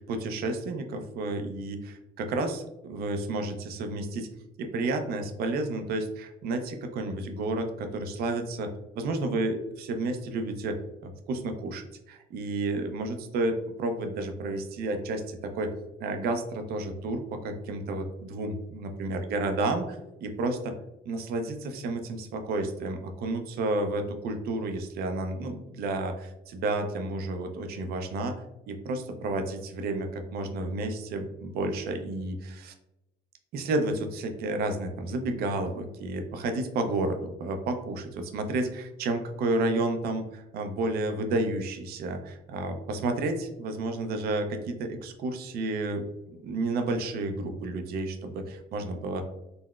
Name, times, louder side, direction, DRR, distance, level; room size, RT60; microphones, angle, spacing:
voice 1, 0.0-4.3 4.6-8.7 8.9-10.8 11.0-15.7 16.0-20.7 21.1-32.7 33.5-46.1 46.4-49.2, right 2 dB, 65° right, 6 dB, 0.5 m, -31 dB
3.8 x 2.0 x 2.3 m, 0.90 s
cardioid pair, 110°, 17 cm